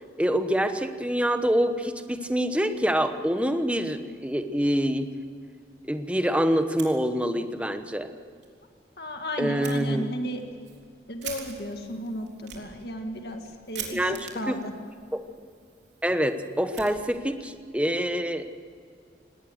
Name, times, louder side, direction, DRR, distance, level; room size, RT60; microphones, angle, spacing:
voice 1, 0.2-5.1 5.8-8.1 9.4-10.0 13.9-14.6 15.1-15.2 16.0-18.5, equal, 5° right, 8 dB, 1.1 m, -26 dB
Fire, 6.7-7.5 7.9-8.0 8.4-8.5 9.6-9.8 10.3-17.5, right 8 dB, 80° right, 3.6 m, -44 dB
voice 2, 9.0-10.4 11.1-14.0 14.4-14.7, equal, 60° left, 4 dB, 1.9 m, -34 dB
19.0 x 19.0 x 7.9 m, 2.2 s
head